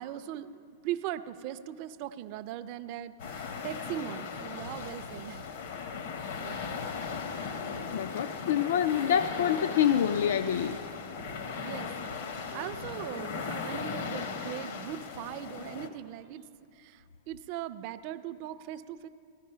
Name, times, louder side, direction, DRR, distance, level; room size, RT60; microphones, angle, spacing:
voice 1, 0.0-5.4 6.4-6.9 11.6-11.9 12.2-19.1, right 12 dB, 35° right, 13 dB, 0.3 m, -40 dB
sound 1, 3.2-15.9, left 6 dB, 55° left, 0.8 m, -38 dB
sound 2, 6.4-13.8, right 9 dB, 80° right, 0.6 m, -50 dB
voice 2, 7.9-10.8, left 9 dB, 80° left, 11 dB, 0.3 m, -26 dB
16.0 x 11.5 x 5.5 m, 2.4 s
supercardioid pair, 175°, 0 cm